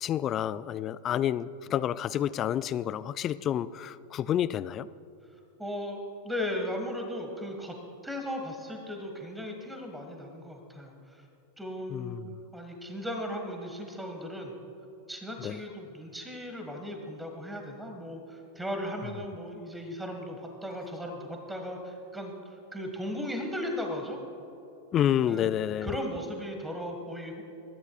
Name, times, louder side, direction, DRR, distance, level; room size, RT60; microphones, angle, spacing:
voice 1, 0.0-4.9 11.9-12.4 15.4-15.6 24.9-25.9, left 10 dB, 30° left, 17 dB, 0.3 m, -29 dB
voice 2, 5.6-6.0 6.2-7.8 8.0-11.2 11.6-12.2 12.5-14.5 15.1-24.2 25.3-25.5 25.8-27.4, left 1 dB, 5° right, 3 dB, 1.6 m, -37 dB
21.0 x 13.5 x 2.4 m, 2.8 s
figure-of-eight pair, 90°, 0 cm